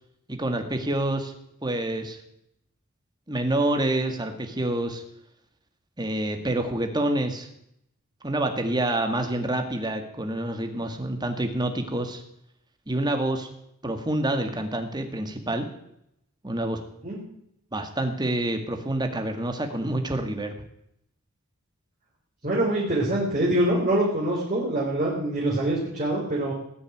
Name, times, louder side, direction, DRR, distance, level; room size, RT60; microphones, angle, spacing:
voice 1, 0.3-1.3 1.6-2.2 3.3-5.0 6.0-7.5 8.2-12.2 12.9-13.5 13.8-15.7 16.4-16.8 17.7-20.5, right 1 dB, 20° right, 5 dB, 1.9 m, -27 dB
voice 2, 22.4-26.5, right 1 dB, 35° right, -5 dB, 4.0 m, -24 dB
19.0 x 6.9 x 9.2 m, 0.76 s
head